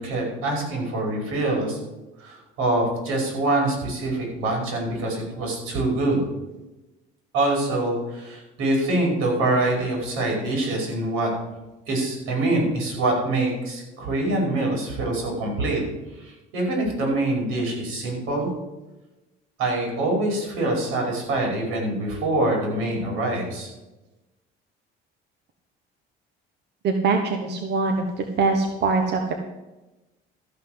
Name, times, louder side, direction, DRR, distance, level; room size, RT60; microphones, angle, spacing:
voice 1, 0.0-1.8 2.2-6.2 7.3-11.3 11.9-15.8 16.2-18.5 19.6-23.7, right 2 dB, 80° right, 0 dB, 5.4 m, -25 dB
voice 2, 26.8-28.0 28.4-29.3, right 4 dB, 55° right, 4 dB, 1.3 m, -22 dB
13.5 x 5.9 x 8.0 m, 1.0 s
cardioid pair, 120°, 21 cm